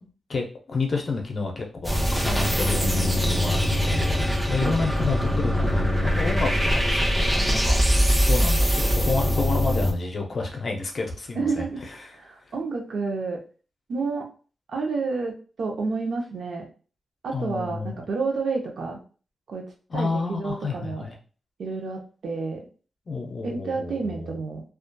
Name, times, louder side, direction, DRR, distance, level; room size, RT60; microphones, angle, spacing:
voice 1, 0.3-7.8 8.3-11.6 17.3-18.0 19.9-21.2 23.1-24.4, left 3 dB, 45° left, 1 dB, 0.5 m, -30 dB
sound 1, 1.8-9.9, equal, 10° right, 0.5 m, -22 dB
voice 2, 11.4-11.8 12.1-13.4 13.9-14.3 14.7-16.7 17.2-19.0 19.5-19.7 19.9-21.0 21.6-22.7 23.4-24.6, right 4 dB, 70° right, 1 dB, 0.6 m, -29 dB
2.6 x 2.3 x 2.2 m, 0.38 s
wide cardioid pair, 145°, 0 cm